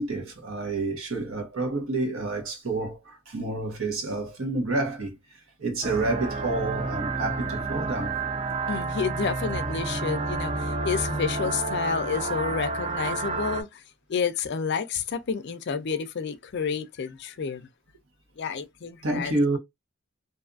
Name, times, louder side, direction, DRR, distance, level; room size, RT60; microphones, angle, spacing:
voice 1, 0.0-5.2 5.6-8.1 8.5-8.6 19.0-19.6, right 2 dB, 80° right, 1.0 m, -29 dB
sound 1, 5.8-13.6, right 3 dB, 30° right, 0.4 m, -30 dB
voice 2, 8.7-13.8 14.1-17.7 18.4-19.6, left 6 dB, 55° left, 0.4 m, -30 dB
2.6 x 2.4 x 2.4 m
head